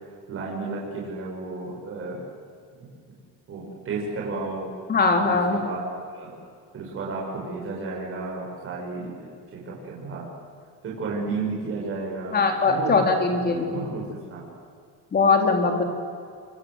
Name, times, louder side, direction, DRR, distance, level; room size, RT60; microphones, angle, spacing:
voice 1, 0.3-2.2 2.8-2.9 3.5-4.7 5.2-6.3 6.7-10.3 10.8-13.0 13.4-14.5, right 3 dB, 35° right, -3 dB, 6.3 m, -33 dB
voice 2, 4.9-5.6 12.3-13.8 15.1-15.8, left 4 dB, 25° left, 4 dB, 3.6 m, -21 dB
28.0 x 25.0 x 8.1 m, 2.2 s
cardioid pair, 175°, 39 cm